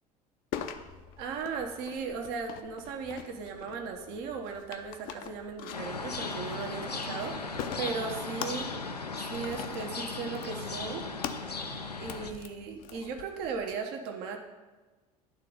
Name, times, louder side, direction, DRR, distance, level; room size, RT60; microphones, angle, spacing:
sound 1, 0.5-13.7, left 8 dB, 45° left, 0.6 m, -44 dB
voice 1, 1.2-8.7 9.2-11.0 12.0-14.4, right 5 dB, 50° right, 4 dB, 0.9 m, -37 dB
sound 2, 5.7-12.3, left 3 dB, 90° left, 0.5 m, -37 dB
11.0 x 3.7 x 5.3 m, 1.3 s
figure-of-eight pair, 65°, 20 cm